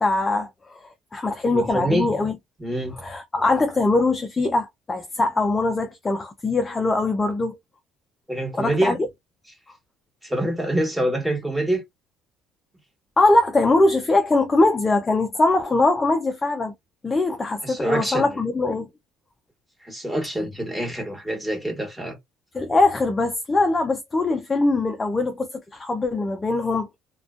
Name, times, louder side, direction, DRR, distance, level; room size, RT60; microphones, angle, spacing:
voice 1, 0.0-0.8 1.1-2.4 3.0-7.6 8.6-9.1 13.2-16.7 17.0-18.9 22.5-26.9, left 2 dB, 25° left, 0.4 m, -22 dB
voice 2, 1.5-2.1 2.6-2.9 8.3-9.0 10.2-11.8 17.6-18.4 19.8-22.2, right 1 dB, 5° right, 1.2 m, -25 dB
2.4 x 2.2 x 2.4 m
supercardioid pair, 90°, 0 cm